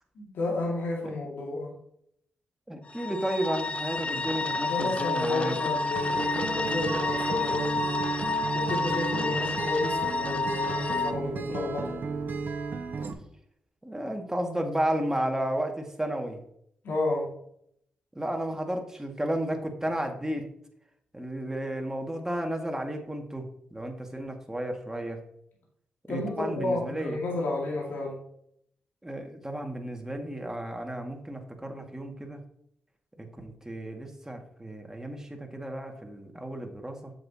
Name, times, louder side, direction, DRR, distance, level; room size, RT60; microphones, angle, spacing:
voice 1, 0.2-1.7 4.7-8.1 8.5-12.0 16.8-17.3 26.1-28.2, left 2 dB, 75° left, -3 dB, 2.1 m, -31 dB
voice 2, 2.7-5.5 13.8-16.4 18.2-20.5 21.1-23.5 23.7-25.2 26.1-27.2 29.0-32.4 33.2-37.1, right 1 dB, 10° right, 2 dB, 1.9 m, -33 dB
sound 1, 2.9-11.1, left 3 dB, 35° left, 0.7 m, -30 dB
Acoustic guitar, 5.9-13.1, right 5 dB, 60° right, 1.0 m, -34 dB
7.7 x 6.9 x 2.8 m, 0.70 s
supercardioid pair, 45°, 4 cm